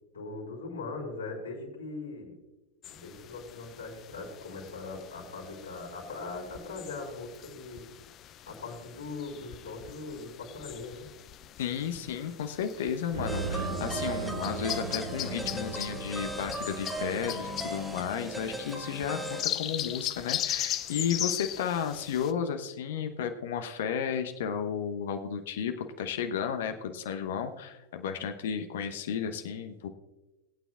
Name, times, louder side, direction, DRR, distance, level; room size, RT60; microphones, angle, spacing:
voice 1, 0.1-2.4 2.9-7.8 8.5-11.1, left 3 dB, 75° left, -9 dB, 4.1 m, -40 dB
sound 1, 2.8-22.3, left 11 dB, 30° left, 0.5 m, -39 dB
voice 2, 11.6-29.9, left 7 dB, 55° left, 7 dB, 0.9 m, -33 dB
sound 2, 13.1-18.4, right 4 dB, 60° right, 3.1 m, -38 dB
sound 3, 13.3-19.4, right 1 dB, 5° right, 1.4 m, -37 dB
21.0 x 9.1 x 2.4 m, 1.1 s
figure-of-eight pair, 90°, 0 cm